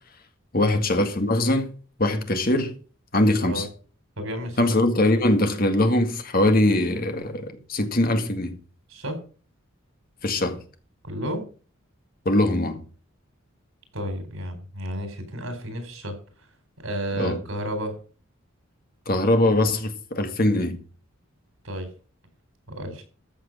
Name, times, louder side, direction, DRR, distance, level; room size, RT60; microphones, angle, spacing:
voice 1, 0.5-1.7 2.0-2.7 3.1-3.6 4.6-8.6 10.2-10.6 12.3-12.8 17.2-17.4 19.1-20.8, left 1 dB, 45° left, 1.9 m, -22 dB
voice 2, 4.2-4.7 8.9-9.2 11.0-11.5 13.9-16.2 16.8-18.0 21.6-21.9 22.7-23.0, equal, 85° right, 4.4 m, -32 dB
14.0 x 6.5 x 6.2 m
head